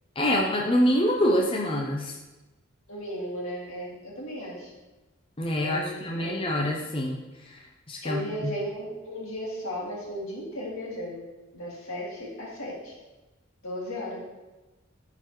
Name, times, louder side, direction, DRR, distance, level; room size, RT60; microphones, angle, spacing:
voice 1, 0.2-2.1 5.4-7.2 7.5-7.6 7.9-8.5, equal, 25° left, -1 dB, 0.6 m, -25 dB
voice 2, 2.9-4.7 5.6-6.4 8.0-11.2 11.5-12.9 13.6-14.2, equal, 80° left, -4 dB, 2.1 m, -35 dB
11.0 x 4.0 x 3.0 m, 1.1 s
head